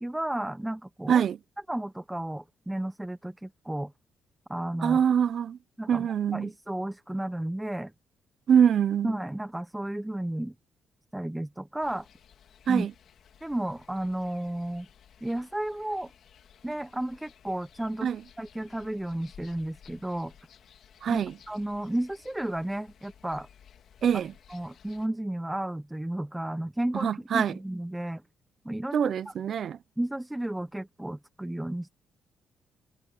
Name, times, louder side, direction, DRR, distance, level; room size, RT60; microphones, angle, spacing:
voice 1, 0.0-1.2 1.7-3.9 4.5-5.0 5.8-7.9 9.0-10.5 11.1-12.1 12.7-12.9 13.4-14.9 15.2-16.1 16.6-18.1 18.4-20.3 21.1-23.5 24.5-28.2 28.6-29.3 30.0-31.9, right 1 dB, 10° right, 0.9 m, -33 dB
voice 2, 4.8-5.6 5.9-6.5 8.5-9.1 12.7-12.9 18.0-18.2 21.0-21.3 24.0-24.3 26.9-27.5 28.9-29.8, right 8 dB, 60° right, 0.7 m, -24 dB
sound 1, 11.8-25.1, left 8 dB, 65° left, 2.8 m, -56 dB
cardioid pair, 90°, 0 cm